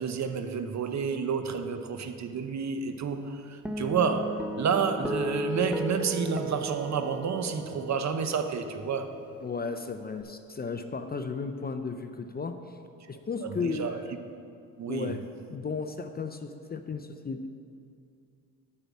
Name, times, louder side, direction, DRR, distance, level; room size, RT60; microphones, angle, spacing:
voice 1, 0.0-9.1 13.4-14.0 14.8-15.2, right 6 dB, 45° right, 8 dB, 0.8 m, -30 dB
Guitar, 3.7-10.2, right 1 dB, 5° right, 0.8 m, -36 dB
voice 2, 9.4-12.8 13.1-14.1 14.9-15.2 15.5-17.5, left 4 dB, 25° left, 7 dB, 0.5 m, -34 dB
6.8 x 5.5 x 7.3 m, 2.4 s
supercardioid pair, 60°, 38 cm